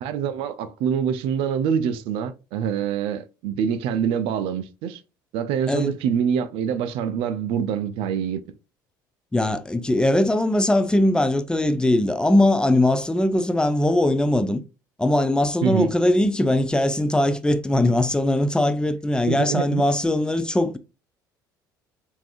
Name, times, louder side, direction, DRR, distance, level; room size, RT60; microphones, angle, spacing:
voice 1, 0.0-5.0 5.3-8.4 15.6-15.9 19.2-19.8, right 8 dB, 60° right, 0.4 m, -25 dB
voice 2, 5.7-6.0 9.3-14.6 15.0-20.8, left 1 dB, 10° left, 0.4 m, -20 dB
3.3 x 2.6 x 2.3 m
figure-of-eight pair, 60°, 11 cm